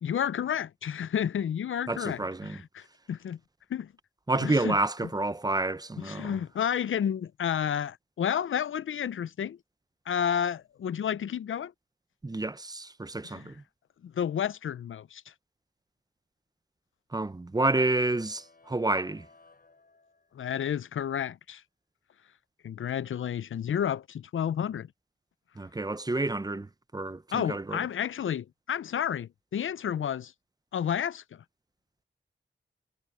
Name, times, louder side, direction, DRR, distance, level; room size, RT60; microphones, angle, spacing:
voice 1, 0.0-3.4 3.7-3.9 4.4-4.8 6.0-9.6 10.1-11.7 13.3-13.5 14.0-15.2 20.3-21.6 22.6-24.9 27.3-30.3 30.7-31.4, left 9 dB, 80° left, 0.5 m, -31 dB
voice 2, 1.9-2.6 4.3-6.4 12.2-13.5 17.1-19.2 25.6-26.7 26.9-27.8, right 2 dB, 20° right, 0.6 m, -29 dB
sound 1, 17.6-20.6, left 3 dB, 50° left, 6.3 m, -58 dB
wide cardioid pair, 75°, 20 cm